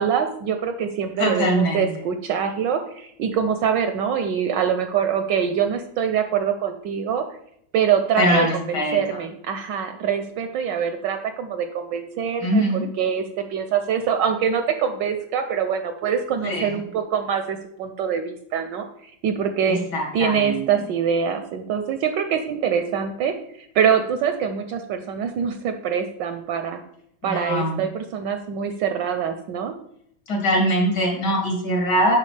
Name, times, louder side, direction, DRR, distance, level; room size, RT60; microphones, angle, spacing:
voice 1, 0.0-7.2 7.7-13.2 13.5-19.8 20.1-26.8 27.2-29.7, right 7 dB, 75° right, 7 dB, 1.0 m, -24 dB
voice 2, 1.2-1.9 8.2-9.2 12.4-12.9 16.4-16.7 19.7-20.8 27.2-27.8 30.3-32.2, equal, 70° left, 0 dB, 2.8 m, -22 dB
11.0 x 3.6 x 3.2 m, 0.69 s
omnidirectional pair, 2.3 m